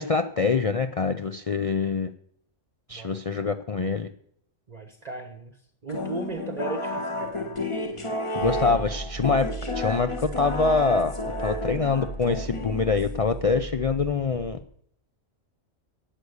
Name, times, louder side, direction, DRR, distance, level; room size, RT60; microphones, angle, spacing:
voice 1, 0.0-2.1 2.9-4.1 8.3-14.6, left 4 dB, 50° left, 9 dB, 0.4 m, -25 dB
voice 2, 2.9-3.2 4.7-5.6 5.8-8.8, right 3 dB, 35° right, 7 dB, 1.0 m, -37 dB
sound 1, 5.9-13.3, left 1 dB, 25° left, 1.2 m, -32 dB
sound 2, 8.4-14.6, right 2 dB, 70° left, 2.6 m, -37 dB
11.5 x 8.3 x 8.0 m, 0.68 s
omnidirectional pair, 1.3 m